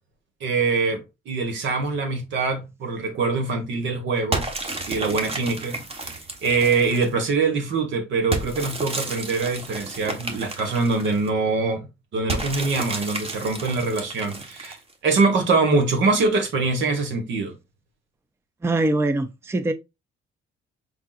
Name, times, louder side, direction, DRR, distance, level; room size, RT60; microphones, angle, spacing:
voice 1, 0.4-4.5 4.8-6.1 6.4-14.8 15.0-17.5, right 3 dB, 75° right, 1.4 m, -24 dB
sound 1, 4.3-7.2 8.3-11.3 12.3-14.9, right 2 dB, 30° right, 1.1 m, -32 dB
voice 2, 18.6-19.7, right 2 dB, 15° right, 0.5 m, -23 dB
4.7 x 3.6 x 2.4 m
cardioid pair, 90°, 20 cm